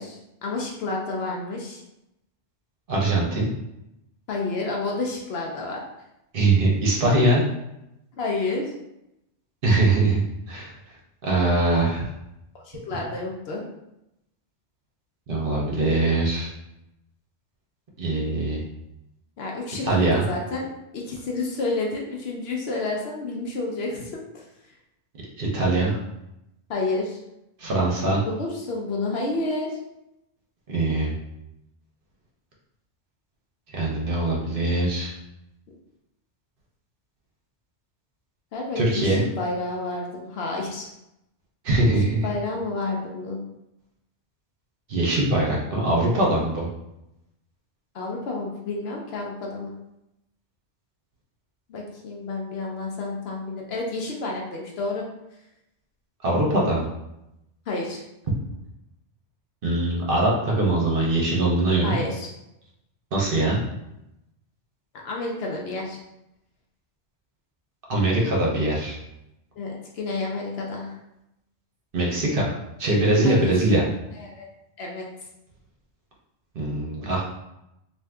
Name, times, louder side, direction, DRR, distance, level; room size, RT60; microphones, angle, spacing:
voice 1, 0.0-1.8 4.3-5.8 8.2-8.7 12.5-13.6 19.4-20.7 20.9-24.4 26.7-27.2 28.2-29.8 38.5-40.9 41.8-43.4 47.9-49.7 51.7-55.0 57.7-58.0 61.8-62.3 65.0-66.0 69.6-71.0 73.2-73.7 74.2-74.5 74.8-75.1, left 3 dB, 65° left, -1 dB, 0.8 m, -30 dB
voice 2, 2.9-3.5 6.3-7.4 9.6-10.2 10.5-10.7 11.2-12.1 12.9-13.0 15.3-16.5 18.0-18.6 19.8-20.2 25.4-26.0 27.6-28.2 30.7-31.1 33.7-35.1 38.8-39.2 41.6-42.3 44.9-46.7 56.2-56.9 59.6-62.0 63.1-63.6 67.9-69.0 71.9-72.5 72.8-73.8 76.5-77.2, right 2 dB, 55° right, -3 dB, 0.8 m, -22 dB
2.6 x 2.4 x 3.3 m, 0.87 s
omnidirectional pair, 1.2 m